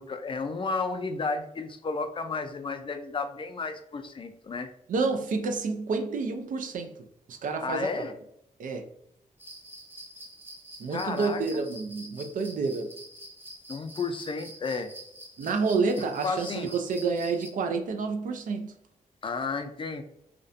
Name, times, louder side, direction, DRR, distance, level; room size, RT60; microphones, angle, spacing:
voice 1, 0.0-4.7 7.6-8.1 10.9-11.6 13.7-14.9 16.2-16.7 19.2-20.0, left 4 dB, 35° left, 0.4 m, -32 dB
voice 2, 4.9-6.9 7.3-8.1 8.6-8.8 10.8-12.9 15.4-18.7, right 4 dB, 70° right, 0.4 m, -29 dB
sound 1, 9.4-17.5, right 1 dB, 15° right, 0.7 m, -47 dB
2.4 x 2.2 x 2.5 m
cardioid pair, 65°, 14 cm